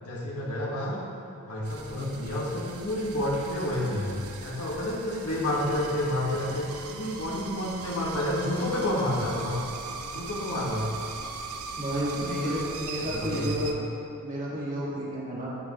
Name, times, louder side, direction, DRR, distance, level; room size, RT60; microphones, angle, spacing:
voice 1, 0.0-1.0 1.4-4.1 4.4-9.6 10.1-10.9 12.0-12.6 13.0-13.6, left 1 dB, 80° left, -4 dB, 1.9 m, -30 dB
sound 1, 1.6-13.7, right 4 dB, 75° right, 0.8 m, -40 dB
voice 2, 1.9-2.3 11.8-13.8 14.2-15.6, equal, 35° right, -6 dB, 2.2 m, -32 dB
15.0 x 6.1 x 3.2 m, 3.0 s
head